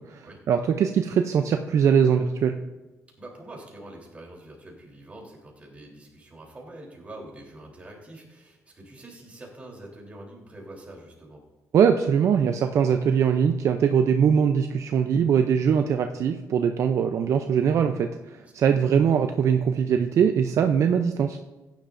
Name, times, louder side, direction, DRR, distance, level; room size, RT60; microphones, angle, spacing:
voice 1, 0.1-2.6 11.7-21.4, right 7 dB, 60° right, 6 dB, 0.6 m, -22 dB
voice 2, 3.2-11.4 18.4-18.5 18.8-18.9, right 1 dB, 25° right, -1 dB, 3.4 m, -45 dB
15.5 x 10.5 x 2.6 m, 1.1 s
cardioid pair, 120°, 6 cm